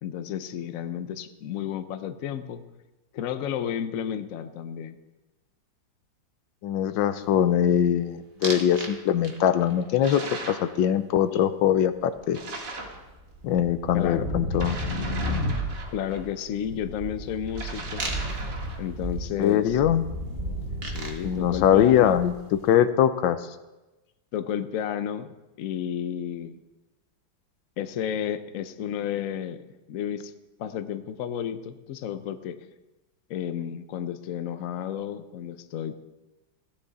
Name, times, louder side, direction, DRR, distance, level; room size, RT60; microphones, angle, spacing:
voice 1, 0.0-2.6 3.1-5.0 13.9-14.2 15.9-18.1 18.8-19.8 20.8-22.2 24.3-26.6 27.8-29.6 29.9-30.3 30.6-32.6 33.3-35.9, left 9 dB, 60° left, 10 dB, 0.9 m, -32 dB
voice 2, 6.6-10.2 10.5-12.4 13.4-14.8 19.4-20.0 21.2-22.3 22.6-23.4, left 10 dB, 80° left, 12 dB, 1.4 m, -22 dB
sound 1, 8.4-8.9 9.2-9.7 12.2-12.3 12.5-22.5, equal, 30° right, 1.8 m, -33 dB
sound 2, 10.0-10.7 12.3-13.0 14.5-16.2 17.5-18.9, right 2 dB, 65° right, 2.6 m, -38 dB
16.0 x 10.0 x 4.1 m, 1.1 s
omnidirectional pair, 2.1 m